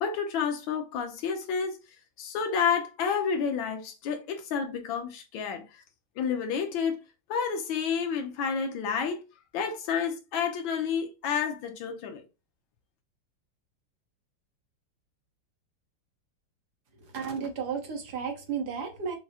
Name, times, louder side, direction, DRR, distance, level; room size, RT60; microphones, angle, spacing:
voice 1, 0.0-1.8 2.2-5.8 6.2-7.0 7.3-9.2 9.5-12.2, left 6 dB, 90° left, 1.5 m, -30 dB
voice 2, 17.1-19.2, right 6 dB, 65° right, 1.4 m, -33 dB
6.1 x 2.0 x 2.7 m
omnidirectional pair, 2.0 m